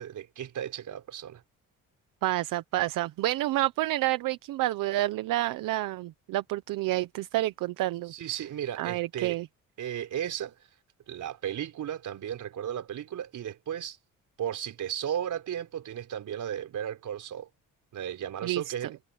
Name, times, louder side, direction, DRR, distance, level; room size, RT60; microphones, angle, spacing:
voice 1, 0.0-1.4 8.1-9.4 9.8-10.5 11.1-14.0 14.4-17.5 17.9-18.9, right 10 dB, 70° right, 4.7 m, -35 dB
voice 2, 2.2-8.1 8.8-9.5 18.4-18.7, right 16 dB, 85° right, 0.9 m, -29 dB
cardioid pair, 80°, 32 cm